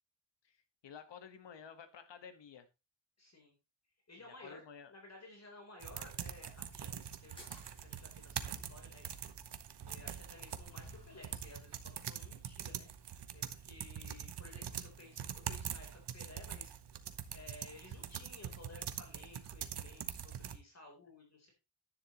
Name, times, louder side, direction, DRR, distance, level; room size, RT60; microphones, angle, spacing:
voice 1, 0.8-2.7 4.2-4.9, left 7 dB, 75° left, 10 dB, 1.6 m, -52 dB
voice 2, 3.2-3.5 4.1-4.6 4.9-6.9 7.2-9.3 9.8-12.9 13.3-16.7 17.3-21.5, left 2 dB, 35° left, 1 dB, 3.7 m, -56 dB
sound 1, 5.8-20.6, right 8 dB, 70° right, 1.1 m, -44 dB
sound 2, 7.2-11.4, equal, 10° left, 5.9 m, -58 dB
10.5 x 10.0 x 3.0 m, 0.27 s
wide cardioid pair, 140°, 43 cm